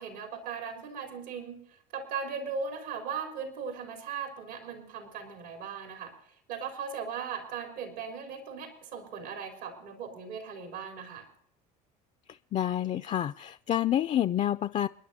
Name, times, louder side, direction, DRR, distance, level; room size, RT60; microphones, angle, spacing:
voice 1, 0.0-1.6 1.9-6.1 6.5-11.3, right 6 dB, 90° right, 4 dB, 3.9 m, -38 dB
voice 2, 12.3-14.9, left 11 dB, 35° left, 12 dB, 0.4 m, -28 dB
29.5 x 10.5 x 2.8 m, 0.67 s
supercardioid pair, 85°, 20 cm